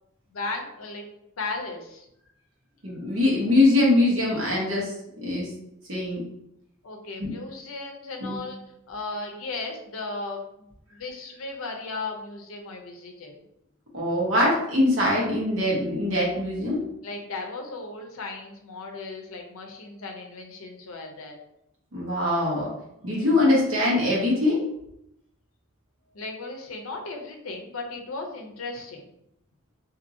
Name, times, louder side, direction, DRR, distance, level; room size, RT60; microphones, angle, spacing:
voice 1, 0.3-1.1 1.4-2.1 6.8-8.6 8.9-13.3 17.0-21.4 26.1-29.1, left 3 dB, 80° left, 2 dB, 0.6 m, -36 dB
voice 2, 2.8-5.5 5.9-6.2 7.2-7.3 8.2-8.4 13.9-16.8 21.9-22.7 23.0-24.6, left 2 dB, 65° right, -4 dB, 1.1 m, -23 dB
2.7 x 2.7 x 2.6 m, 0.80 s
head